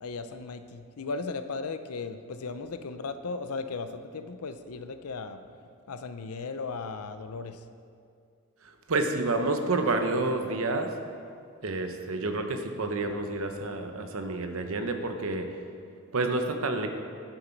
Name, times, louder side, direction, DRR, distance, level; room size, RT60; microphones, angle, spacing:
voice 1, 0.0-5.4 5.9-7.6, left 4 dB, 85° left, 10 dB, 0.6 m, -36 dB
voice 2, 8.6-10.9 11.6-15.5 16.1-16.9, right 2 dB, 65° right, 6 dB, 0.9 m, -29 dB
10.5 x 7.9 x 4.5 m, 2.3 s
head